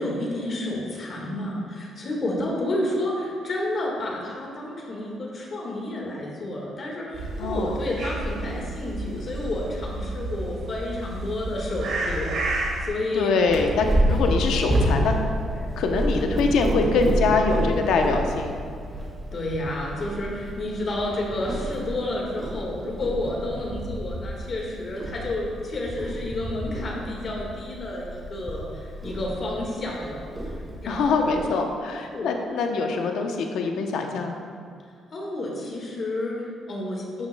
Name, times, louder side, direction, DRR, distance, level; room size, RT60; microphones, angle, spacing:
voice 1, 0.0-13.4 19.3-31.3 32.1-32.4 35.1-37.3, left 1 dB, 45° left, -2 dB, 1.7 m, -30 dB
sound 1, 7.1-12.9, right 2 dB, 75° right, 1.7 m, -31 dB
voice 2, 7.4-7.8 13.1-15.1 15.8-18.5 30.9-34.4, left 4 dB, 80° left, 3 dB, 0.8 m, -24 dB
Purr, 13.5-31.4, equal, 25° right, 1.7 m, -29 dB
11.5 x 7.2 x 2.2 m, 2.1 s
cardioid pair, 90°, 0 cm